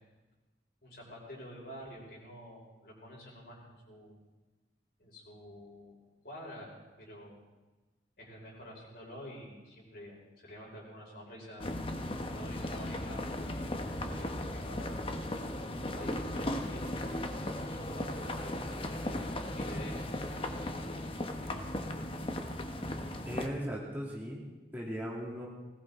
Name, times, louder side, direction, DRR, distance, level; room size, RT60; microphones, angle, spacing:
voice 1, 0.8-4.2 5.0-6.0 6.2-6.7 7.0-7.4 8.2-11.8 12.3-13.2 14.0-15.0 15.9-17.3 17.6-19.3 19.5-20.0 21.2-21.7, equal, 60° left, -3 dB, 5.4 m, -48 dB
sound 1, 11.6-23.5, left 1 dB, 30° left, 1.1 m, -37 dB
voice 2, 23.3-24.4 24.7-25.5, equal, 10° right, -3 dB, 2.5 m, -37 dB
20.0 x 17.5 x 3.8 m, 1.2 s
head